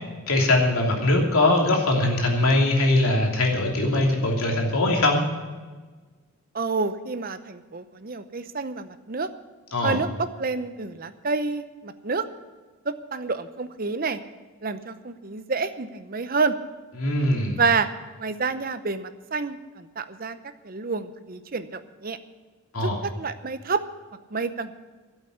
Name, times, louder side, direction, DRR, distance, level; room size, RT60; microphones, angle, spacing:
voice 1, 0.3-5.3 9.7-10.0 17.0-17.6 22.7-23.0, left 2 dB, 75° left, 0 dB, 3.0 m, -21 dB
voice 2, 6.5-9.3 9.8-12.3 12.8-14.2 14.6-16.5 17.5-17.9 18.2-20.4 20.6-22.2 22.8-23.8 24.3-24.7, right 4 dB, 40° right, 11 dB, 0.7 m, -28 dB
12.0 x 8.2 x 9.6 m, 1.3 s
head